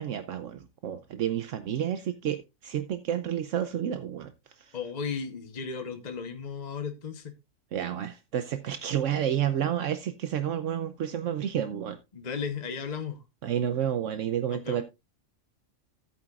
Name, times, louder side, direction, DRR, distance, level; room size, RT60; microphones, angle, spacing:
voice 1, 0.0-4.8 7.7-12.0 13.4-14.8, right 10 dB, 75° right, 1.1 m, -30 dB
voice 2, 4.7-7.4 12.1-13.2 14.5-14.8, left 6 dB, 35° left, 1.1 m, -35 dB
14.0 x 8.7 x 2.4 m
omnidirectional pair, 1.3 m